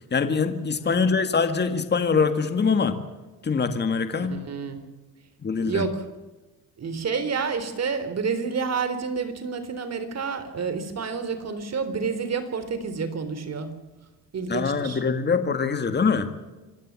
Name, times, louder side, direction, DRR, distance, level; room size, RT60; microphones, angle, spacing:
voice 1, 0.1-3.0 3.4-4.4 5.4-5.9 14.5-16.3, left 5 dB, 30° left, 9 dB, 1.9 m, -23 dB
voice 2, 4.2-4.8 5.6-6.0 6.8-13.7 14.3-15.0, right 5 dB, 45° right, 11 dB, 3.8 m, -29 dB
27.0 x 16.0 x 7.3 m, 1.1 s
cardioid pair, 115°, 36 cm